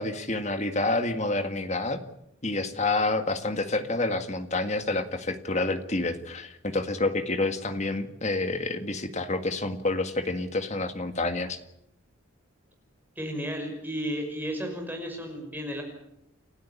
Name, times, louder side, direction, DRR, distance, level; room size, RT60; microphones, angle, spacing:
voice 1, 0.0-2.0 2.4-11.6, left 2 dB, 35° left, 8 dB, 1.9 m, -28 dB
voice 2, 13.2-15.8, equal, 10° right, 2 dB, 5.9 m, -33 dB
29.5 x 13.0 x 9.9 m, 0.82 s
head